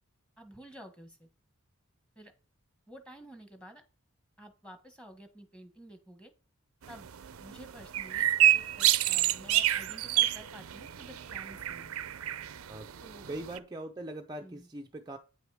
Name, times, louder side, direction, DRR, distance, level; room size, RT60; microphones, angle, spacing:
voice 1, 0.4-1.3 2.1-2.3 2.9-3.8 4.4-6.3 6.9-7.1 7.4-11.9 13.0-13.3 14.4-14.7, right 1 dB, 5° left, 1.4 m, -51 dB
sound 1, 6.8-13.6, right 12 dB, 80° right, 0.5 m, -29 dB
voice 2, 13.3-15.2, right 1 dB, 20° right, 0.5 m, -41 dB
9.1 x 6.2 x 4.8 m
head